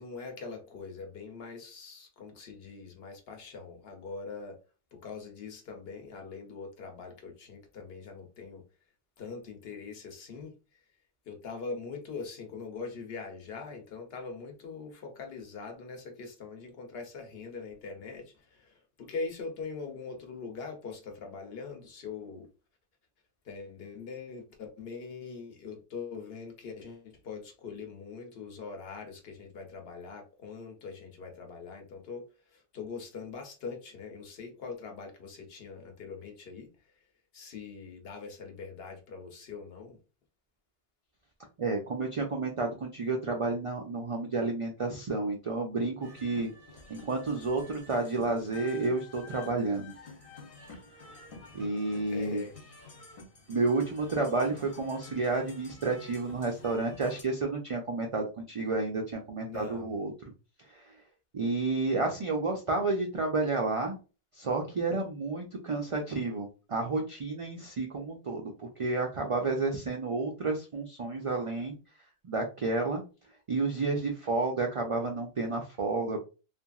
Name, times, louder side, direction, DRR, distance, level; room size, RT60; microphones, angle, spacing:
voice 1, 0.0-4.6 4.9-8.6 9.2-10.5 11.3-22.5 23.4-36.7 37.3-40.0 52.1-52.5 59.4-59.9, left 4 dB, 65° left, 0.9 m, -42 dB
voice 2, 41.6-46.5 46.9-49.9 51.5-52.4 53.5-60.1 60.7-60.9 61.3-64.0 64.3-71.8 72.2-73.0 73.5-76.2, right 3 dB, 55° right, 0.3 m, -31 dB
sound 1, 46.0-57.2, left 4 dB, 40° left, 0.6 m, -50 dB
2.8 x 2.5 x 2.3 m
omnidirectional pair, 1.1 m